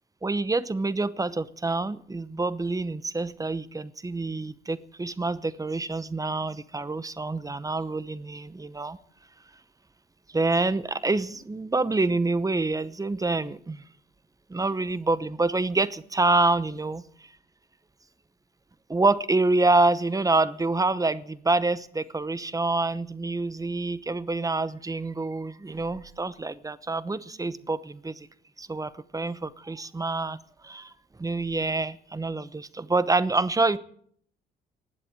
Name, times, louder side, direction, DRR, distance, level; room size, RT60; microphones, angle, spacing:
voice 1, 0.2-9.0 10.3-13.8 14.5-17.0 18.9-28.3 28.6-30.4 30.6-30.9 31.2-33.8, right 3 dB, 15° right, 16 dB, 0.9 m, -27 dB
19.5 x 7.7 x 8.8 m, 0.62 s
cardioid pair, 90°, 20 cm